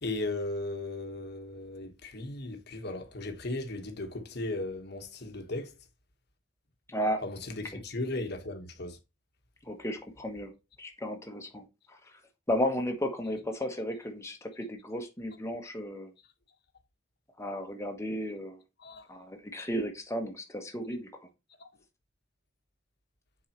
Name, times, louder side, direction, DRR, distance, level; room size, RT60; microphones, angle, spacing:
voice 1, 0.0-5.7 7.2-9.0 18.8-19.1 21.6-21.7, left 2 dB, 60° left, 1.3 m, -36 dB
voice 2, 6.9-7.2 9.6-10.5 10.8-12.0 12.5-16.1 17.4-18.6 19.1-21.1, equal, 15° left, 1.3 m, -34 dB
7.1 x 4.7 x 3.0 m
head